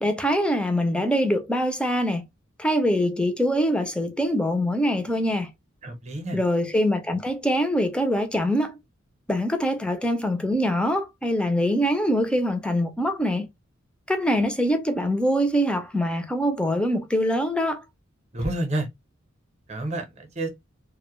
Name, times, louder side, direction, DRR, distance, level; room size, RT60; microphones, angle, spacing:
voice 1, 0.0-2.3 2.6-5.5 6.3-8.8 9.3-13.5 14.1-17.8, equal, 5° left, 0.4 m, -24 dB
voice 2, 5.8-6.4 18.3-18.9 19.7-20.5, right 1 dB, 35° right, 0.6 m, -29 dB
2.1 x 2.1 x 2.9 m
head